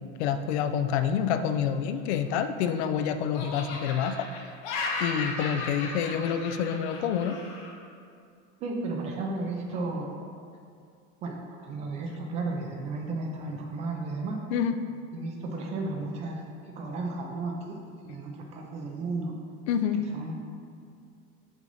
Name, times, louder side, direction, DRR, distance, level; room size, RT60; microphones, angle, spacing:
voice 1, 0.2-4.3 5.0-7.4 14.5-14.7 19.7-20.0, left 8 dB, 80° left, 10 dB, 0.5 m, -27 dB
Laughter, 2.1-3.0 3.3-7.7, left 3 dB, 60° left, 1.2 m, -35 dB
voice 2, 8.6-10.2 11.2-14.4 15.1-16.4 16.8-17.8 18.0-19.3 20.1-20.3, right 3 dB, 20° right, 1 dB, 0.4 m, -33 dB
6.1 x 3.9 x 5.4 m, 2.3 s
cardioid pair, 180°, 33 cm